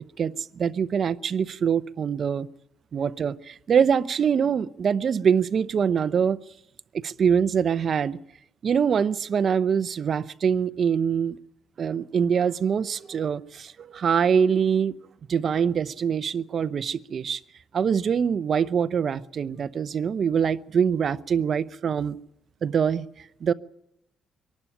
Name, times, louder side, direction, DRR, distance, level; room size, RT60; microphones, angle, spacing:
voice 1, 0.2-2.5 2.9-6.4 6.9-8.2 8.6-11.4 11.8-14.9 15.3-17.4 17.7-22.2 22.6-23.5, right 7 dB, 40° right, 0.7 m, -24 dB
24.0 x 12.0 x 10.0 m
cardioid pair, 165°, 0 cm